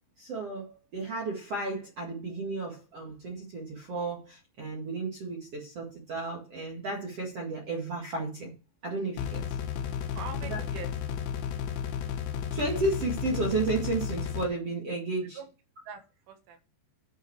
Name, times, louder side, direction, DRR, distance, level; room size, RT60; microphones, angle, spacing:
voice 1, 0.2-8.5 8.8-9.6 10.4-10.6 12.5-15.4, right 3 dB, 55° right, 1.7 m, -33 dB
sound 1, 9.2-14.5, left 8 dB, 85° left, 3.9 m, -33 dB
voice 2, 10.1-10.9 15.4-15.5 15.9-16.6, right 5 dB, 80° right, 3.9 m, -42 dB
11.0 x 5.7 x 4.7 m
omnidirectional pair, 5.5 m